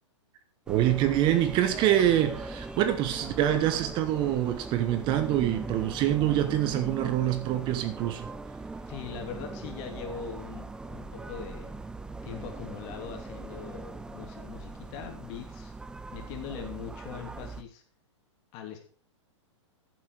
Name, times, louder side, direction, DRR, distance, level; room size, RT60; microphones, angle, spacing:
sound 1, 0.7-17.6, right 3 dB, 5° right, 0.5 m, -40 dB
voice 1, 0.7-8.3, right 12 dB, 30° right, 10 dB, 1.1 m, -25 dB
voice 2, 8.9-11.7 12.2-15.7 16.1-17.8 18.5-18.8, left 7 dB, 40° left, 4 dB, 3.0 m, -41 dB
14.0 x 7.5 x 4.9 m, 0.42 s
hypercardioid pair, 140°, 16 cm